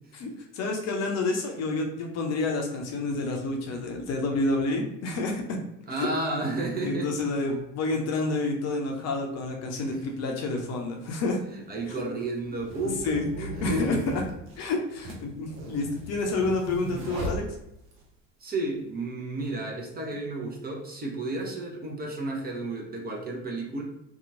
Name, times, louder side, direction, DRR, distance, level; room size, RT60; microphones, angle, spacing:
voice 1, 0.1-5.6 6.0-6.1 6.8-11.4 11.9-12.0 13.0-14.2 14.6-17.4, left 2 dB, 45° left, 1 dB, 0.6 m, -29 dB
voice 2, 5.9-7.1 9.7-9.9 11.5-14.2 18.4-23.8, right 2 dB, 25° right, -1 dB, 0.7 m, -32 dB
sound 1, 10.6-10.7 11.6-18.1, equal, 65° right, 0.8 m, -39 dB
2.8 x 2.3 x 2.6 m, 0.84 s
figure-of-eight pair, 60°, 38 cm